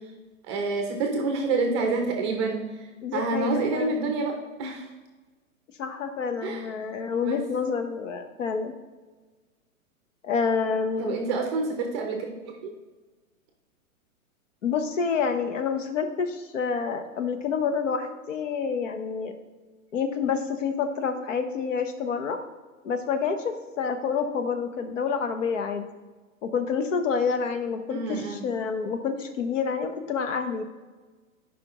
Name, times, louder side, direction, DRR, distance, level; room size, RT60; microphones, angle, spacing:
voice 1, 0.5-4.3 4.6-4.9 6.4-6.7 7.2-7.4 11.0-12.7 27.9-28.4, right 3 dB, 20° right, 3 dB, 0.6 m, -28 dB
voice 2, 3.0-3.9 5.8-8.7 10.2-11.2 14.6-19.3 19.9-22.4 22.8-25.8 26.4-30.6, left 5 dB, 60° left, 7 dB, 1.0 m, -28 dB
11.5 x 5.2 x 3.0 m, 1.3 s
hypercardioid pair, 155°, 43 cm